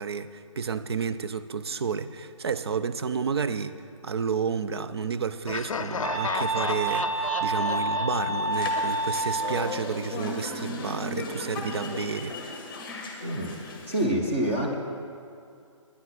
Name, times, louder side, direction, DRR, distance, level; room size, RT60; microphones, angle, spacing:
voice 1, 0.0-12.6, right 6 dB, 50° right, 12 dB, 0.5 m, -31 dB
Laughter, 5.5-9.3, left 6 dB, 80° left, 0.6 m, -34 dB
sound 1, 6.0-9.7, right 2 dB, 80° right, 1.5 m, -28 dB
sound 2, 8.5-14.1, left 2 dB, 10° left, 1.0 m, -36 dB
voice 2, 13.2-13.5 13.9-14.7, right 1 dB, 20° right, -1 dB, 0.8 m, -26 dB
10.0 x 9.8 x 6.0 m, 2.4 s
hypercardioid pair, 170°, 17 cm